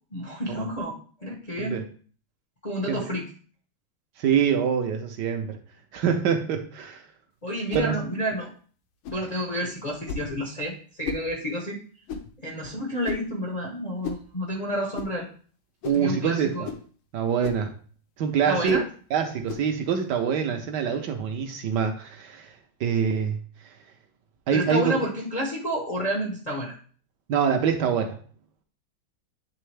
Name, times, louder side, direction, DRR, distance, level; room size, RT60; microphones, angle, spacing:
voice 1, 0.1-1.8 2.6-3.3 7.4-8.5 9.1-11.8 12.4-15.3 15.9-16.6 18.5-18.8 24.5-26.8, equal, 55° left, -3 dB, 0.4 m, -30 dB
voice 2, 4.2-5.6 5.9-7.0 7.7-8.0 15.8-16.7 17.1-17.7 18.2-18.8 19.1-22.5 22.8-23.4 24.5-25.0 27.3-28.2, right 7 dB, 70° right, 5 dB, 1.1 m, -25 dB
sound 1, 7.7-7.9 9.0-9.3 10.1-10.3 11.0-11.3 12.1-12.3 13.0-13.3 14.0-14.3 14.9-15.1 15.8-16.1 16.6-16.9 17.4-17.7 18.6-18.9 19.5-19.7, left 6 dB, 80° left, 1.6 m, -34 dB
8.8 x 3.5 x 3.2 m, 0.43 s
omnidirectional pair, 2.3 m